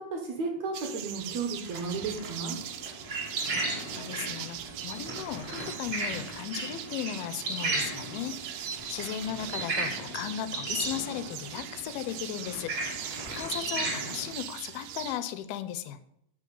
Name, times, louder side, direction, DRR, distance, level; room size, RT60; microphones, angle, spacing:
voice 1, 0.0-2.6, right 4 dB, 60° right, 3 dB, 2.1 m, -33 dB
sound 1, 0.7-15.2, right 11 dB, 80° right, 2.0 m, -41 dB
Crumpling crinkling, 1.5-2.9 3.2-3.3 4.1-4.2 4.7-6.5 8.6-10.2 10.8-11.0 11.9-12.0 12.2-14.3, equal, 15° right, 2.6 m, -46 dB
sound 2, 1.8-14.3, right 2 dB, 35° right, 1.6 m, -36 dB
voice 2, 3.5-16.0, left 11 dB, 85° left, 12 dB, 2.5 m, -37 dB
12.5 x 5.6 x 5.3 m, 0.76 s
omnidirectional pair, 4.4 m